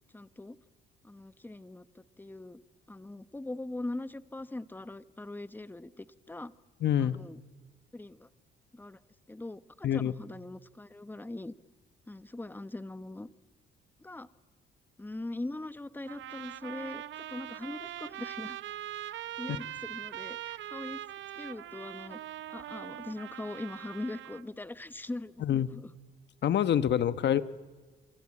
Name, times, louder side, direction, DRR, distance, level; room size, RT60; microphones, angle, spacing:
voice 1, 0.1-0.6 1.0-2.6 2.9-6.5 7.0-7.4 7.9-8.3 8.7-9.0 9.3-11.5 12.1-13.3 14.0-14.3 15.0-18.6 19.4-21.0 21.3-22.2 22.5-25.4 25.8-25.9 27.2-27.4, left 2 dB, 10° left, 14 dB, 0.9 m, -41 dB
voice 2, 6.8-7.2 9.8-10.1 25.4-25.7 26.4-27.4, left 10 dB, 60° left, 14 dB, 1.1 m, -26 dB
sound 1, 16.1-24.4, right 12 dB, 70° right, 0.8 m, -42 dB
27.0 x 24.0 x 8.7 m, 1.4 s
cardioid pair, 90°, 20 cm